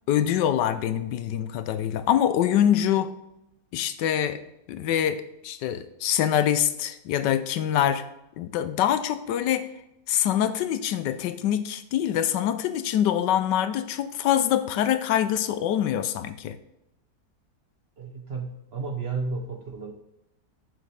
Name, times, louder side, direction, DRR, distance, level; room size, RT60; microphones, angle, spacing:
voice 1, 0.1-3.1 3.7-4.4 4.7-8.0 8.4-9.7 10.1-16.6, left 10 dB, 90° left, 12 dB, 1.3 m, -24 dB
voice 2, 18.0-19.9, right 4 dB, 45° right, 4 dB, 0.9 m, -32 dB
8.0 x 7.4 x 3.4 m, 0.86 s
omnidirectional pair, 1.9 m